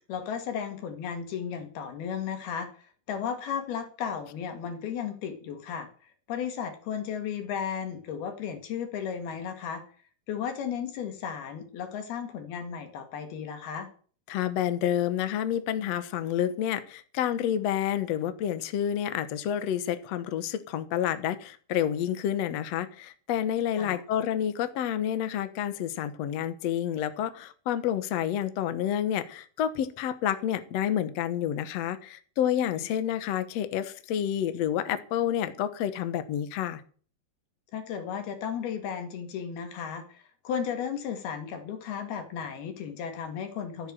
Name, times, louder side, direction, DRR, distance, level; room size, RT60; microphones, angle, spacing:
voice 1, 0.1-2.7 3.1-5.9 6.3-9.8 10.3-13.9 23.8-24.0 32.8-32.9 37.7-43.9, left 7 dB, 85° left, 6 dB, 4.0 m, -34 dB
voice 2, 14.3-36.8, left 10 dB, 65° left, 11 dB, 1.8 m, -29 dB
14.5 x 8.1 x 7.6 m, 0.44 s
omnidirectional pair, 4.3 m